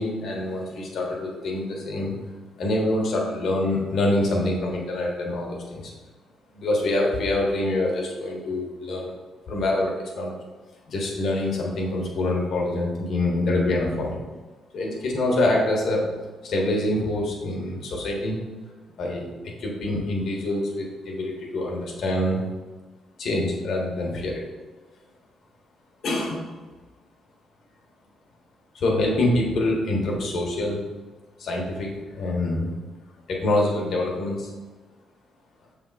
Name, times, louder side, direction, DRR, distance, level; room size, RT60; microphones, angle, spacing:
voice 1, 0.0-2.2 2.6-5.9 6.5-9.1 9.5-10.3 10.9-14.2 14.7-16.1 16.4-18.4 19.0-22.4 23.2-24.4 26.0-26.5 28.7-30.8 31.4-32.7 33.3-34.5, left 1 dB, 65° left, -1 dB, 1.5 m, -25 dB
6.6 x 3.6 x 4.2 m, 1.3 s
cardioid pair, 90°, 0 cm